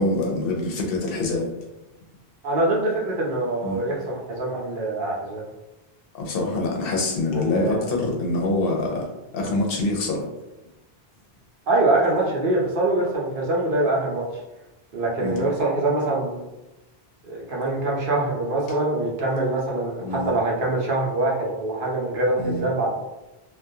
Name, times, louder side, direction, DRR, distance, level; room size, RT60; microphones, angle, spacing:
voice 1, 0.0-1.5 3.6-3.8 6.1-9.1 9.3-10.2 15.2-15.5 20.0-20.3 22.4-22.6, left 2 dB, 70° left, 0 dB, 0.7 m, -25 dB
voice 2, 2.4-5.4 7.3-7.8 11.7-14.3 14.9-16.4 17.3-22.9, right 2 dB, 60° right, -3 dB, 0.7 m, -24 dB
2.3 x 2.2 x 2.6 m, 0.99 s
omnidirectional pair, 1.1 m